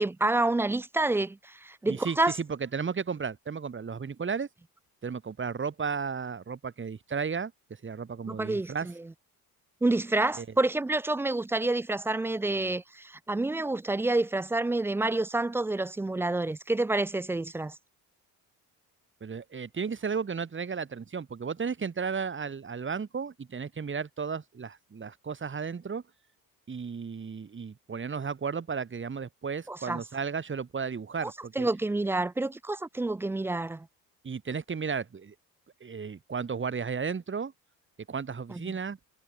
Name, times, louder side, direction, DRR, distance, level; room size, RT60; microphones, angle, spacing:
voice 1, 0.0-2.3 8.3-8.9 9.8-17.7 29.7-30.0 31.2-31.3 31.6-33.9 38.5-38.8, right 2 dB, 5° right, 0.3 m, -28 dB
voice 2, 1.9-4.5 5.0-7.5 7.8-8.9 10.4-10.5 19.2-26.0 26.7-31.7 34.2-35.3 35.8-37.5 38.1-39.0, right 5 dB, 25° right, 1.8 m, -34 dB
figure-of-eight pair, 50°, 49 cm